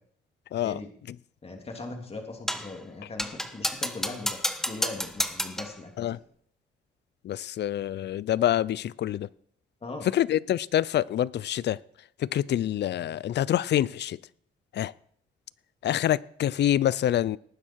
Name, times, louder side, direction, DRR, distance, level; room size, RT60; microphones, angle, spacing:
voice 1, 1.4-4.4 4.7-6.2 9.8-10.1, left 3 dB, 30° left, 3 dB, 3.2 m, -39 dB
sound 1, 2.5-2.8 3.2-5.8, equal, ahead, 1.2 m, -31 dB
voice 2, 7.2-9.3 10.1-11.8 12.2-14.2 14.7-14.9 15.8-17.4, left 12 dB, 60° left, 22 dB, 0.6 m, -26 dB
18.5 x 10.0 x 4.7 m, 0.62 s
cardioid pair, 90°, 20 cm